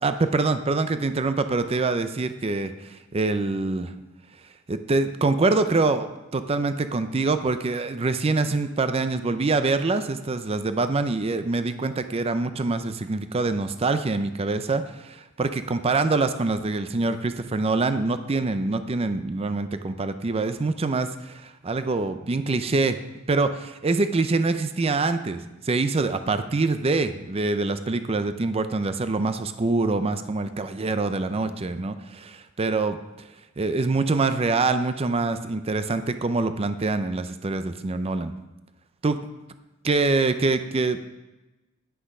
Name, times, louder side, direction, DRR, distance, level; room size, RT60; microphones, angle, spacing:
voice 1, 0.0-3.9 4.7-23.0 23.3-33.3 33.6-38.3 39.0-39.2 39.8-41.0, right 3 dB, 30° right, 10 dB, 0.5 m, -25 dB
10.0 x 6.2 x 5.4 m, 1.0 s
head